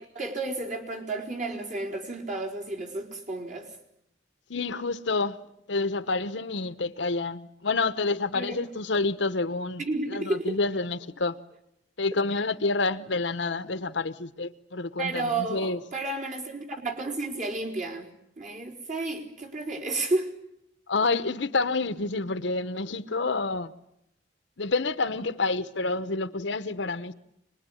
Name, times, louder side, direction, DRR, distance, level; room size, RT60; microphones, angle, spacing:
voice 1, 0.1-3.7 8.3-8.6 9.8-10.6 15.0-18.1 18.4-20.3, right 2 dB, 40° right, 4.3 m, -32 dB
voice 2, 4.5-5.4 5.7-9.8 10.1-11.4 12.0-15.8 20.9-23.7 24.6-27.1, left 3 dB, 70° left, 1.0 m, -28 dB
25.5 x 21.0 x 10.0 m
head